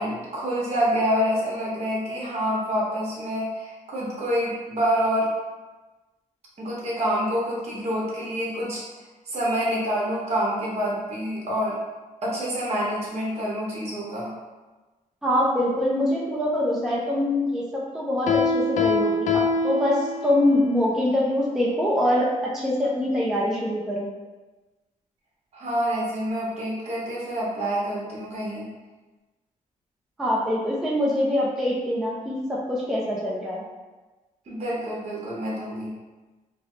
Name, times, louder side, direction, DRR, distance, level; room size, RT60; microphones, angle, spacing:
voice 1, 0.0-5.3 6.6-8.8 9.3-11.7 12.2-14.3 25.5-28.7 34.5-35.9, equal, 50° right, -5 dB, 1.0 m, -27 dB
voice 2, 15.2-24.1 30.2-33.6, left 1 dB, 5° right, -5 dB, 0.4 m, -24 dB
Piano, 18.3-20.6, left 3 dB, 60° left, 0.4 m, -24 dB
3.2 x 2.0 x 3.7 m, 1.2 s
wide cardioid pair, 175°, 14 cm